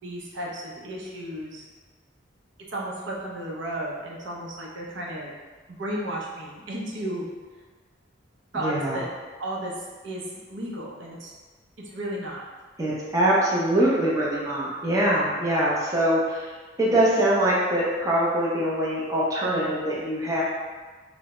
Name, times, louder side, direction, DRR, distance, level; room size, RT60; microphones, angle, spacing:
voice 1, 0.0-1.6 2.7-5.3 5.8-7.3 8.5-9.1 9.4-11.3 11.9-12.4 19.4-19.7, right 1 dB, 70° right, -3 dB, 0.6 m, -33 dB
voice 2, 8.5-9.0 12.8-16.5 16.8-20.4, right 1 dB, 15° right, -6 dB, 0.4 m, -23 dB
3.3 x 2.0 x 2.9 m, 1.4 s
head